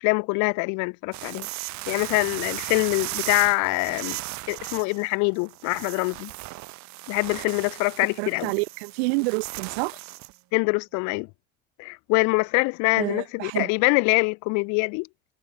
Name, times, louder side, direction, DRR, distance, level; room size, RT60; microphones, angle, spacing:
voice 1, 0.0-1.5 1.9-4.2 4.5-6.3 7.1-8.5 10.5-11.3 11.8-15.1, left 31 dB, 75° left, 0.4 m, -24 dB
sound 1, 1.1-10.4, right 20 dB, 70° right, 1.0 m, -36 dB
voice 2, 8.2-10.0 13.0-13.7, right 29 dB, 90° right, 0.6 m, -28 dB
supercardioid pair, 70°, 29 cm